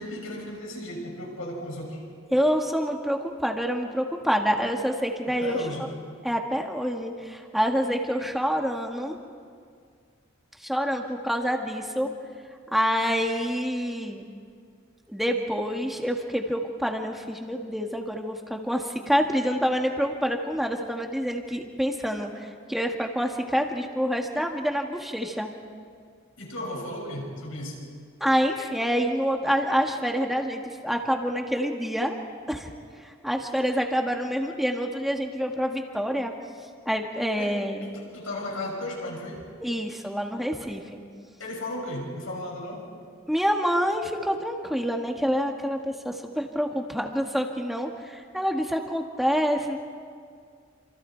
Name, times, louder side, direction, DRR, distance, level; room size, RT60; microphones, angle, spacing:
voice 1, 0.0-2.0 5.4-5.9 26.4-27.8 37.4-39.5 41.4-42.9, left 1 dB, 75° left, -1 dB, 6.5 m, -35 dB
voice 2, 2.3-5.6 6.2-9.2 10.6-12.1 12.7-14.2 15.1-25.5 28.2-32.2 32.5-32.7 33.0-36.3 36.9-37.8 39.6-41.0 43.3-49.8, equal, ahead, 2 dB, 1.8 m, -27 dB
28.0 x 27.5 x 4.6 m, 2.2 s
head